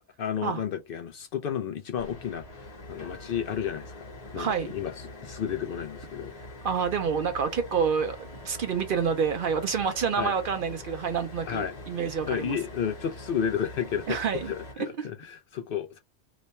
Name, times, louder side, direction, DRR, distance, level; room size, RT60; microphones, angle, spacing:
voice 1, 0.2-4.1 4.3-6.3 10.2-10.3 11.5-11.7 12.3-14.2 14.5-16.0, left 8 dB, 60° left, 0.6 m, -32 dB
sound 1, 2.0-14.7, left 1 dB, 35° left, 1.1 m, -44 dB
voice 2, 4.4-4.7 6.6-12.6 14.1-14.5, right 6 dB, 60° right, 0.6 m, -28 dB
3.0 x 2.1 x 4.0 m
omnidirectional pair, 1.2 m